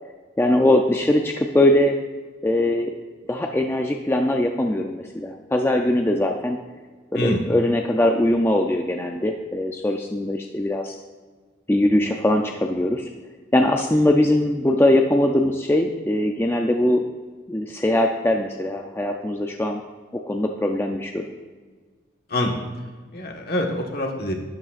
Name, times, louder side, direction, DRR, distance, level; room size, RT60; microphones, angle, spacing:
voice 1, 0.4-2.0 2.4-2.9 3.3-6.6 7.1-11.0 11.7-13.1 13.5-17.0 17.5-19.8 20.2-21.3, left 1 dB, 10° left, 3 dB, 0.4 m, -21 dB
voice 2, 22.3-22.6 23.1-24.3, left 1 dB, 55° left, 2 dB, 1.4 m, -25 dB
12.0 x 11.0 x 2.5 m, 1.4 s
head